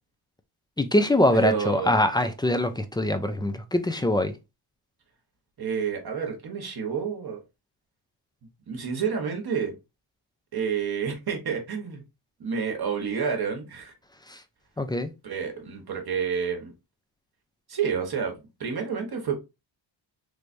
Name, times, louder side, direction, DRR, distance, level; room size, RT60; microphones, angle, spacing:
voice 1, 0.8-4.4 14.3-14.4 14.8-15.1, left 1 dB, 10° left, 0.3 m, -23 dB
voice 2, 1.3-2.0 5.6-7.4 8.7-9.8 10.5-12.0 12.4-13.9 15.2-16.7 17.7-19.3, right 6 dB, 50° right, 1.0 m, -29 dB
3.4 x 3.1 x 2.5 m
cardioid pair, 100°, 47 cm